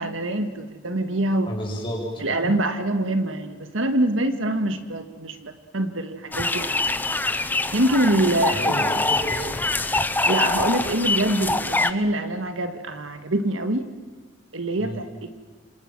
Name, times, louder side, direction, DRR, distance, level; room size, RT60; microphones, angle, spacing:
voice 1, 0.0-1.5 2.2-6.9 7.7-8.8 10.3-13.9 14.5-15.3, right 1 dB, 85° right, 8 dB, 1.9 m, -25 dB
voice 2, 1.5-2.3 8.5-9.6 14.8-15.0, equal, 25° left, -2 dB, 7.2 m, -31 dB
sound 1, 6.3-11.9, left 2 dB, 10° left, 0.8 m, -24 dB
28.0 x 26.5 x 6.2 m, 1.4 s
head